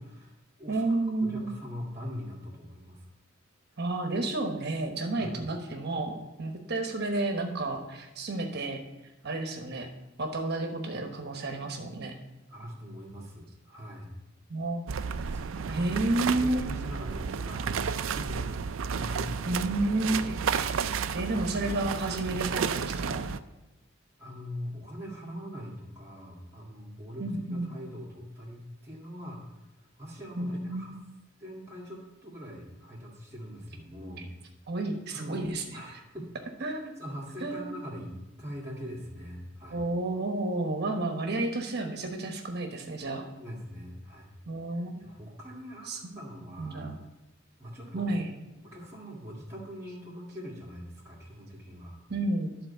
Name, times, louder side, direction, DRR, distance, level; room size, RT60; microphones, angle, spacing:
voice 1, 0.0-3.1 5.2-5.3 12.5-14.1 15.3-16.0 16.4-19.6 22.3-22.4 24.2-29.5 29.8-31.0 31.4-34.3 35.1-36.3 36.6-39.8 43.4-44.3 45.0-46.9 47.6-48.1 48.6-52.0, equal, 15° right, -7 dB, 1.9 m, -42 dB
voice 2, 0.7-1.5 3.8-8.8 9.2-9.9 10.2-12.1 14.5-14.9 15.7-16.7 19.5-20.8 21.1-23.3 27.2-27.8 30.4-30.9 34.7-35.6 36.6-36.9 37.4-37.7 39.7-43.3 44.5-45.1 45.9-46.2 46.6-47.0 47.9-48.3 52.1-52.5, right 2 dB, 55° right, 4 dB, 1.1 m, -31 dB
sound 1, 14.9-23.4, right 6 dB, 75° right, 0.4 m, -32 dB
12.0 x 4.3 x 6.8 m, 1.0 s
head